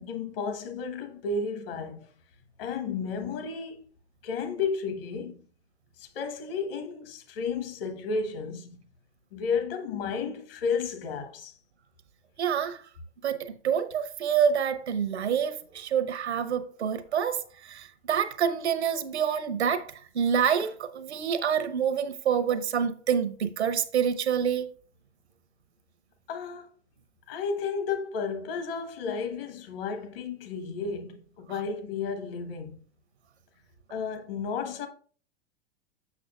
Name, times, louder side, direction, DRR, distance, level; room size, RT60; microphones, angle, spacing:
voice 1, 0.0-2.1 2.6-3.8 4.2-5.4 6.0-8.8 9.3-11.5 26.3-26.7 27.3-32.8 33.9-34.9, left 5 dB, 55° left, 1.2 m, -32 dB
voice 2, 12.4-12.8 13.2-24.7, right 8 dB, 75° right, 0.8 m, -27 dB
7.0 x 6.0 x 2.4 m
figure-of-eight pair, 95°, 33 cm